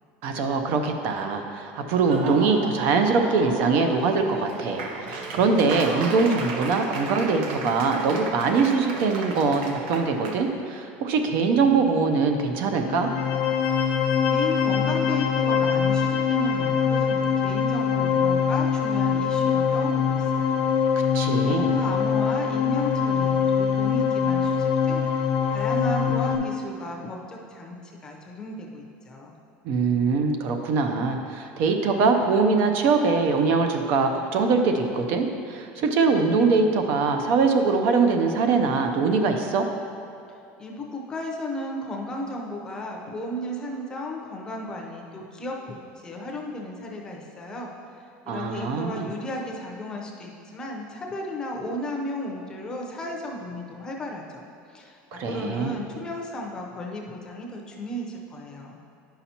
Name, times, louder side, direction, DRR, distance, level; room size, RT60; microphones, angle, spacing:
voice 1, 0.2-13.1 21.1-21.7 29.6-39.7 48.3-49.1 55.1-55.7, right 4 dB, 50° right, 5 dB, 0.5 m, -23 dB
Laughter / Applause, 1.9-10.4, right 3 dB, 85° right, 0.8 m, -34 dB
sound 1, 12.8-26.4, left 7 dB, 65° left, 0.7 m, -23 dB
voice 2, 14.2-20.7 21.0-29.4 40.3-58.8, left 1 dB, 15° left, 0 dB, 0.6 m, -34 dB
10.0 x 5.6 x 2.8 m, 2.5 s
cardioid pair, 175°, 5 cm